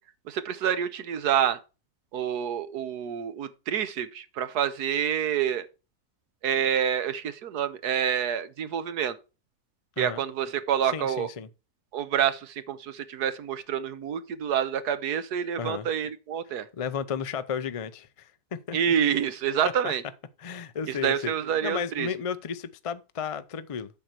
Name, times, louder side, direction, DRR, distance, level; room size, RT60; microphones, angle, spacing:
voice 1, 0.3-1.6 2.1-5.7 6.4-9.2 10.0-11.3 11.9-16.7 18.7-20.0 20.9-22.1, right 9 dB, 90° right, 1.5 m, -27 dB
voice 2, 10.8-11.5 15.6-15.9 16.7-18.8 19.8-19.9 20.4-21.3 21.6-23.9, left 7 dB, 50° left, 0.4 m, -33 dB
8.6 x 6.5 x 4.4 m
omnidirectional pair, 1.7 m